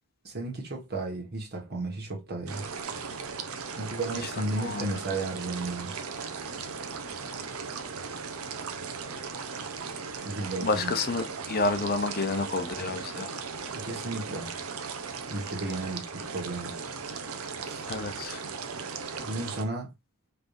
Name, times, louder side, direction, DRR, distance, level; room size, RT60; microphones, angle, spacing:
voice 1, 0.2-2.6 3.7-5.9 10.2-10.9 13.7-14.6 15.3-16.8 17.6-17.8 19.2-19.9, right 2 dB, 50° right, 1.7 m, -34 dB
sound 1, 2.5-19.6, right 5 dB, 90° right, 0.9 m, -37 dB
voice 2, 4.2-4.8 10.6-13.3 17.9-18.4, left 3 dB, 45° left, 0.7 m, -30 dB
5.6 x 3.5 x 2.7 m
head